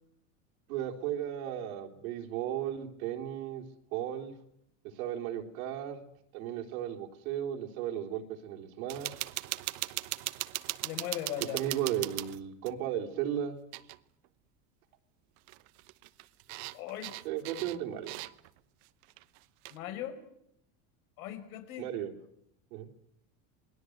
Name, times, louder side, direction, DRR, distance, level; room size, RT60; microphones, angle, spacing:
voice 1, 0.7-3.6 3.9-4.3 5.0-6.0 6.3-9.2 11.5-13.6 17.2-18.1 21.8-22.1 22.7-22.9, right 10 dB, 80° right, 3 dB, 3.7 m, -35 dB
sound 1, 8.9-12.8 13.7-14.0 14.2-14.3 15.4-18.6 19.0-19.8, right 21 dB, 55° right, 1.0 m, -39 dB
voice 2, 10.8-11.6 16.7-17.1 19.7-20.2 21.2-21.9, left 11 dB, 85° left, 8 dB, 5.2 m, -38 dB
28.0 x 21.0 x 8.0 m, 0.76 s
supercardioid pair, 160°, 42 cm